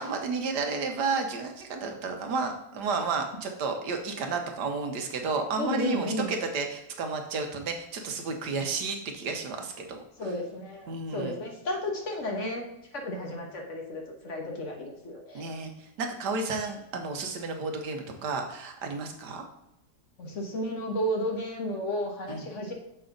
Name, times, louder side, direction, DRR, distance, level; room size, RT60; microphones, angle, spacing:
voice 1, 0.0-10.0 10.9-11.4 15.3-19.4 22.3-22.4, right 4 dB, 80° right, 4 dB, 1.5 m, -32 dB
voice 2, 5.6-6.3 10.2-12.6 12.9-15.5 20.2-22.7, left 1 dB, 50° left, 1 dB, 1.4 m, -33 dB
6.9 x 5.5 x 3.8 m, 0.84 s
omnidirectional pair, 1.8 m